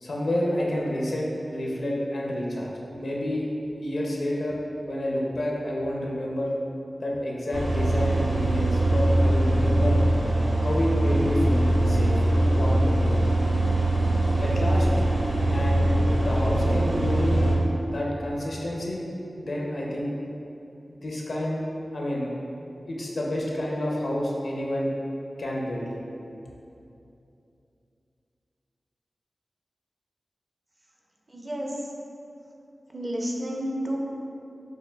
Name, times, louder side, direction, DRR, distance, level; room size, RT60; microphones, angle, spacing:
voice 1, 0.0-2.7 3.0-3.5 3.8-6.5 7.0-10.0 10.6-12.2 12.5-13.0 14.4-14.9 15.5-17.5 17.8-19.0 19.4-20.2 20.9-21.6 21.9-22.3 22.9-24.9 25.4-25.9, left 1 dB, 75° left, -3 dB, 0.6 m, -29 dB
sound 1, 7.5-17.5, right 1 dB, 80° right, 1.2 m, -22 dB
voice 2, 31.3-31.7 32.9-34.0, equal, 35° right, -1 dB, 0.6 m, -30 dB
6.4 x 2.4 x 2.3 m, 2.7 s
cardioid pair, 55°, 0 cm